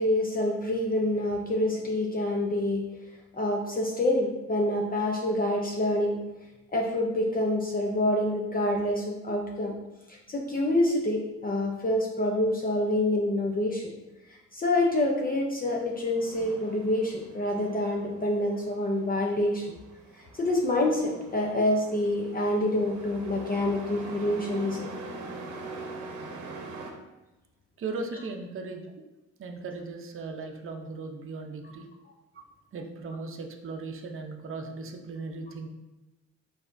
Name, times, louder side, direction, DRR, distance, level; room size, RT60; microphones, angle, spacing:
voice 1, 0.0-2.9 3.3-6.2 6.7-9.7 10.3-13.8 14.5-19.8 20.3-24.9, left 1 dB, 30° left, 0 dB, 0.6 m, -27 dB
Truck, 15.8-26.9, right 3 dB, 75° right, 0.8 m, -43 dB
voice 2, 27.8-28.9 29.4-31.8 32.3-32.4 32.7-35.7, right 3 dB, 45° right, 3 dB, 0.7 m, -37 dB
4.7 x 4.1 x 2.6 m, 1.0 s
cardioid pair, 90°, 30 cm